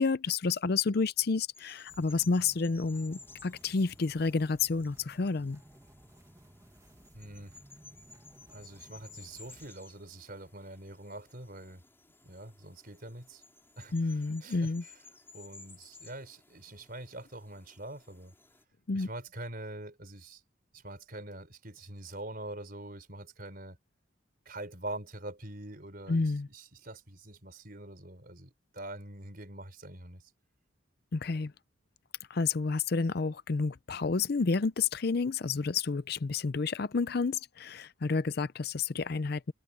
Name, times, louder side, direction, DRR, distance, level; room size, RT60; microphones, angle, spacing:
voice 1, 0.0-5.6 13.9-14.8 18.9-19.1 26.1-26.5 31.1-31.5 32.3-39.5, left 4 dB, 50° left, 0.5 m, -30 dB
sound 1, 1.5-18.6, left 4 dB, 10° left, 5.2 m, -57 dB
sound 2, 1.9-9.7, right 1 dB, 15° right, 1.4 m, -57 dB
voice 2, 7.1-7.6 8.5-11.8 12.2-13.4 13.8-15.0 15.3-18.3 18.9-20.4 20.7-23.8 24.4-30.2, right 1 dB, 45° right, 4.8 m, -44 dB
head